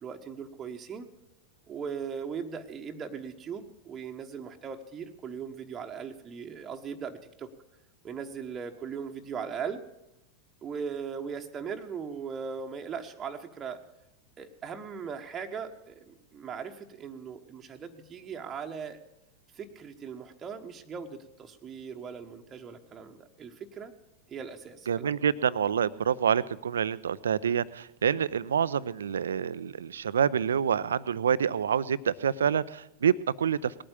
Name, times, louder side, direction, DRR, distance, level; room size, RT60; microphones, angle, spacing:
voice 1, 0.0-1.1 1.7-7.5 8.0-9.8 10.6-13.8 14.4-19.0 19.5-23.9 24.3-25.1, right 6 dB, 20° right, 3 dB, 1.1 m, -39 dB
voice 2, 24.9-33.8, right 8 dB, 65° right, 19 dB, 0.5 m, -27 dB
19.5 x 8.8 x 8.4 m, 0.89 s
figure-of-eight pair, 90°, 0 cm